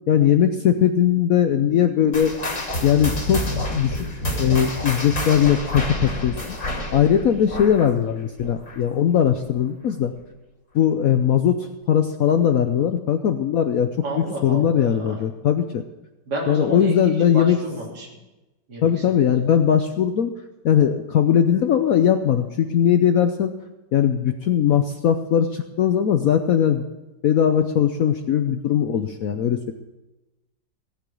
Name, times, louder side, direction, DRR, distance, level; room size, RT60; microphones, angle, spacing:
voice 1, 0.1-2.3 2.8-6.6 6.9-10.1 10.7-13.9 14.2-15.8 16.5-17.6 18.8-20.3 20.6-23.5 23.9-26.9 27.2-29.7, left 9 dB, 65° left, 8 dB, 1.0 m, -20 dB
sound 1, 2.1-9.0 9.3-9.6 10.2-10.3 11.1-11.2, left 1 dB, 40° left, 2.8 m, -28 dB
voice 2, 14.0-15.2 16.3-16.9 17.3-18.1 18.7-19.0, right 1 dB, 60° right, -4 dB, 3.6 m, -31 dB
18.0 x 6.2 x 8.4 m, 1.0 s
omnidirectional pair, 2.0 m